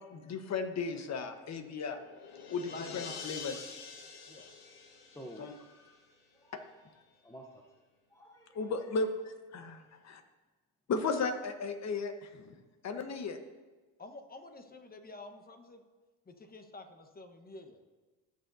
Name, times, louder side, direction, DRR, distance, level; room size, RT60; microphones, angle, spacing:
voice 1, 0.1-2.0 2.5-3.7 5.4-5.5 6.5-6.6 8.5-10.2 10.9-12.5 12.8-13.4, left 4 dB, 45° left, 8 dB, 1.2 m, -35 dB
sound 1, 1.6-6.1, left 5 dB, 75° left, 1.6 m, -47 dB
voice 2, 2.7-3.6 4.3-4.5 14.0-15.8 16.2-17.8, left 2 dB, 25° left, 6 dB, 1.2 m, -49 dB
voice 3, 4.6-7.8 8.1-9.0 9.9-10.0, equal, 10° left, 1 dB, 0.8 m, -54 dB
17.0 x 6.6 x 2.7 m, 1.3 s
supercardioid pair, 85°, 37 cm